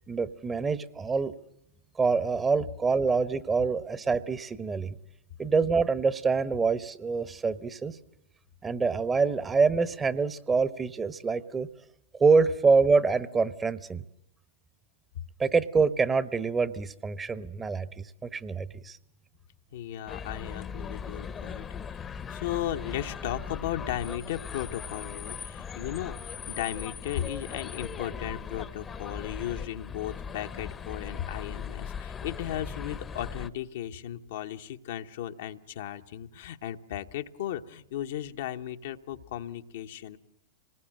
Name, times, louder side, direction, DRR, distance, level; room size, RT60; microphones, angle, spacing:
voice 1, 0.1-1.3 2.0-5.0 5.4-8.0 8.6-11.7 12.1-14.0 15.4-19.0, right 4 dB, 20° right, 15 dB, 1.0 m, -26 dB
voice 2, 19.7-40.2, left 11 dB, 65° left, 6 dB, 1.0 m, -36 dB
sound 1, 20.1-33.5, left 6 dB, 25° left, 0.9 m, -39 dB
26.0 x 20.0 x 7.6 m, 0.77 s
hypercardioid pair, 100°, 0 cm